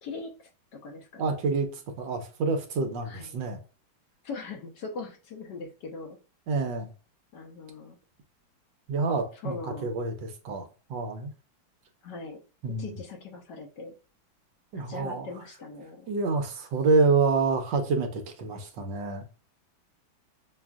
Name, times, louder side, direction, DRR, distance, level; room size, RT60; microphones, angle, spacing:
voice 1, 0.0-1.3 3.1-3.4 4.2-6.2 7.3-8.0 9.4-9.9 12.0-12.4 12.8-14.0 14.9-16.1, left 4 dB, 65° left, 1.3 m, -40 dB
voice 2, 1.2-3.6 6.5-6.9 8.9-11.3 12.6-13.0 14.7-15.3 16.1-19.2, right 4 dB, 70° right, 1.3 m, -27 dB
6.0 x 2.5 x 2.3 m
omnidirectional pair, 2.1 m